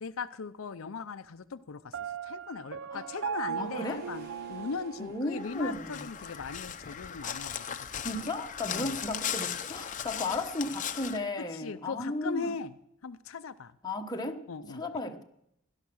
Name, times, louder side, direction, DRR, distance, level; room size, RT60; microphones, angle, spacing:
voice 1, 0.0-8.0 8.7-9.0 11.4-12.8 13.0-13.8 14.5-14.8, left 5 dB, 80° left, 0.6 m, -39 dB
Piano, 1.9-5.8, right 8 dB, 70° right, 0.5 m, -38 dB
Waves surf, 3.3-5.4, right 1 dB, 50° right, 5.5 m, -57 dB
voice 2, 3.6-4.0 5.0-6.0 8.0-12.5 13.8-14.4 14.7-15.2, left 2 dB, 20° left, 1.2 m, -34 dB
Crow, 5.3-11.2, left 8 dB, 40° left, 0.8 m, -37 dB
17.0 x 11.5 x 6.2 m
head